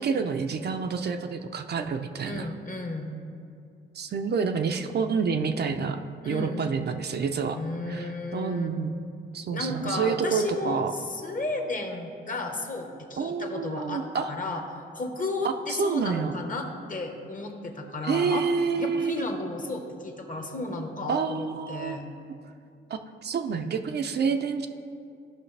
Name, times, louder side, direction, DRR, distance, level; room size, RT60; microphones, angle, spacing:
voice 1, 0.0-2.5 3.9-7.6 7.9-8.9 9.3-10.9 13.2-14.3 15.7-16.3 18.0-19.2 21.1-22.0 22.9-24.7, right 5 dB, 50° right, 6 dB, 0.5 m, -28 dB
voice 2, 2.2-3.1 6.2-6.7 7.5-8.7 9.2-14.6 14.9-18.5 18.8-22.0, left 2 dB, 40° left, 3 dB, 1.2 m, -33 dB
14.5 x 5.7 x 3.3 m, 2.4 s
cardioid pair, 90°, 21 cm